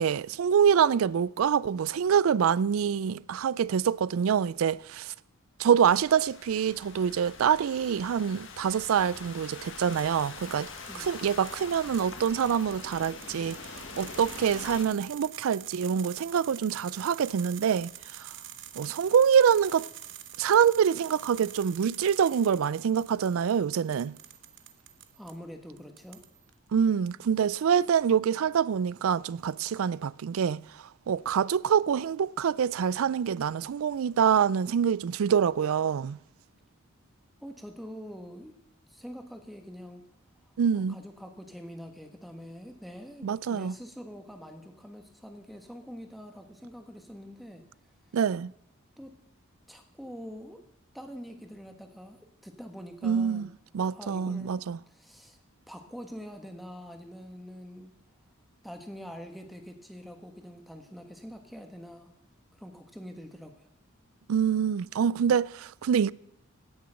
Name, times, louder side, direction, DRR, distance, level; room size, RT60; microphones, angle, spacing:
voice 1, 0.0-5.1 5.6-10.7 11.0-18.3 18.8-19.9 20.4-24.2 26.7-30.6 31.1-36.2 40.6-40.9 43.2-43.7 48.1-48.5 53.0-53.5 53.7-54.8 64.3-66.1, right 7 dB, 75° right, 0.4 m, -25 dB
Thunderstorm / Rain, 5.8-14.8, left 4 dB, 60° left, 1.6 m, -44 dB
sound 1, 8.8-9.3 9.9-25.4 25.8-26.5, right 11 dB, 60° right, 1.0 m, -47 dB
voice 2, 25.1-26.2 37.4-38.5 38.9-40.0 40.7-47.6 49.0-49.1 49.7-50.6 50.9-53.5 53.9-55.4 55.7-57.9 58.6-62.1 62.6-63.7, equal, ahead, 1.4 m, -45 dB
17.0 x 6.9 x 6.4 m
head